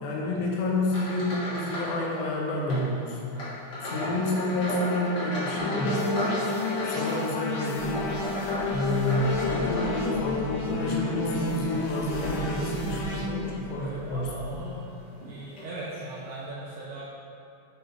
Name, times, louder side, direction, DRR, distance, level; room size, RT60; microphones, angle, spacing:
voice 1, 0.0-3.4 3.8-6.0 6.8-8.1 8.7-14.3 14.6-14.7, left 1 dB, 70° left, -2 dB, 1.9 m, -29 dB
sound 1, 0.8-2.0 2.3-2.8 3.3-10.4 10.9-12.7 13.4-13.6 14.2-14.3 15.2-15.3 15.6-15.7, left 1 dB, 45° left, 1.4 m, -35 dB
sound 2, 5.6-13.2, left 2 dB, 90° left, 3.1 m, -30 dB
sound 3, 7.8-14.6, left 2 dB, 55° right, 2.5 m, -43 dB
voice 2, 9.4-10.2 13.8-14.8 15.2-17.0, right 2 dB, 75° right, -7 dB, 1.9 m, -39 dB
10.0 x 5.1 x 3.3 m, 2.7 s
omnidirectional pair, 4.7 m